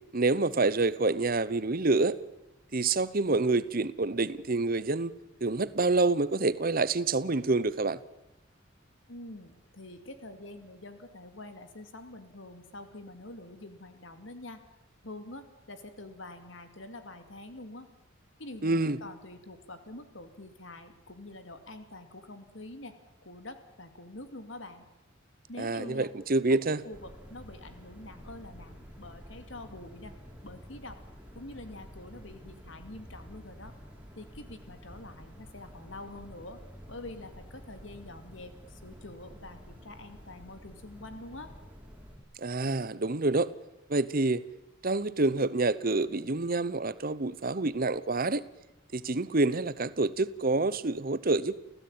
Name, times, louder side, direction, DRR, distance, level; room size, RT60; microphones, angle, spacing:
voice 1, 0.1-2.2 2.7-5.1 5.4-8.0 18.6-19.0 25.6-26.8 42.4-43.5 43.9-44.4 44.8-48.4 48.9-51.6, right 3 dB, 45° right, 1.0 m, -27 dB
voice 2, 9.1-14.6 15.0-17.9 18.4-23.0 23.2-24.9 25.5-26.1 26.5-26.6 26.8-30.1 30.4-31.0 31.3-33.7 34.2-36.6 36.9-41.5, left 2 dB, 65° left, 2.4 m, -46 dB
sound 1, 26.9-42.2, equal, 5° right, 4.5 m, -50 dB
29.5 x 16.0 x 8.9 m
head